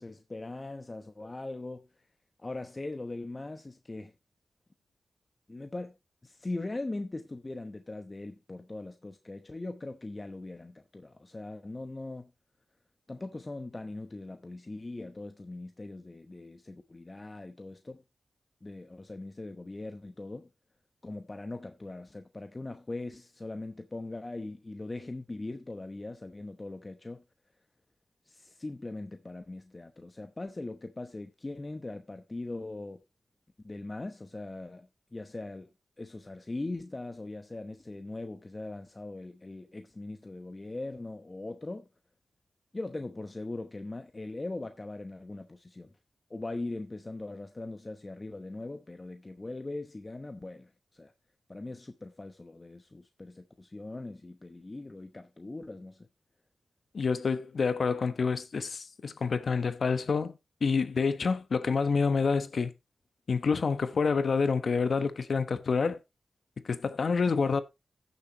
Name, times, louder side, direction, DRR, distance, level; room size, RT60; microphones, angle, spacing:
voice 1, 0.0-2.1 2.4-4.1 5.5-6.0 6.2-12.3 13.1-18.0 18.6-20.5 21.0-27.2 28.2-33.0 33.6-35.7 36.0-41.9 42.7-45.9 46.3-51.1 51.5-56.1, left 2 dB, 30° left, 0.9 m, -40 dB
voice 2, 56.9-60.3 60.6-62.7 63.3-66.0 66.6-67.6, left 5 dB, 65° left, 1.0 m, -28 dB
15.5 x 7.0 x 3.0 m
wide cardioid pair, 80°, 0 cm